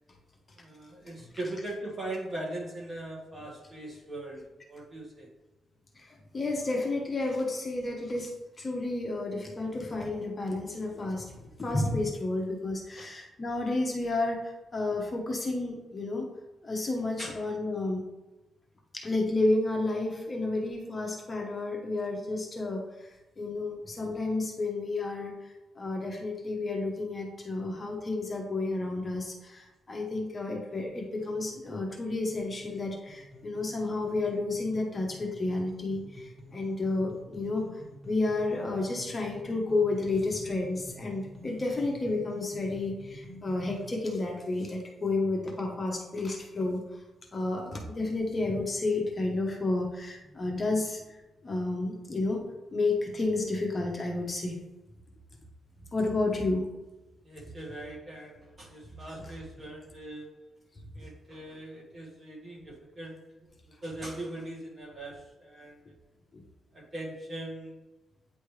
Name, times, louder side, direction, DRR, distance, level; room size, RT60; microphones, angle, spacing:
voice 1, 0.5-5.3 13.0-13.1 17.2-17.5 57.2-60.4 60.9-63.5 63.8-66.0 66.7-67.8, right 1 dB, 30° right, -3 dB, 1.8 m, -40 dB
voice 2, 6.3-16.3 16.6-18.0 18.9-22.8 23.4-25.3 25.8-37.7 38.0-46.8 47.3-51.0 51.4-52.5 52.7-54.6 55.9-56.7, left 2 dB, 30° left, 1 dB, 0.9 m, -31 dB
sound 1, 30.7-43.8, equal, 5° left, 1.8 m, -49 dB
9.1 x 3.3 x 3.2 m, 1.1 s
cardioid pair, 105°, 0 cm